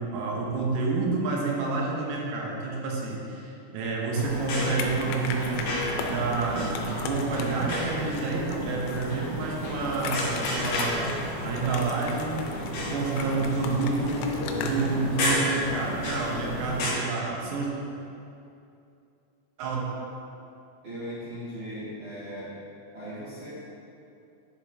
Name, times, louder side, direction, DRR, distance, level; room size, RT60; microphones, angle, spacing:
voice 1, 0.0-5.7 6.0-12.5 12.9-17.7 19.6-19.9, right 3 dB, 85° right, -2 dB, 3.6 m, -29 dB
sound 1, 4.1-16.9, left 1 dB, 60° left, 2.6 m, -32 dB
sound 2, 4.6-15.0, left 5 dB, 85° left, 3.2 m, -38 dB
voice 2, 20.8-22.6 22.9-23.5, equal, 55° right, -14 dB, 2.5 m, -38 dB
10.5 x 4.9 x 3.3 m, 2.7 s
omnidirectional pair, 6.0 m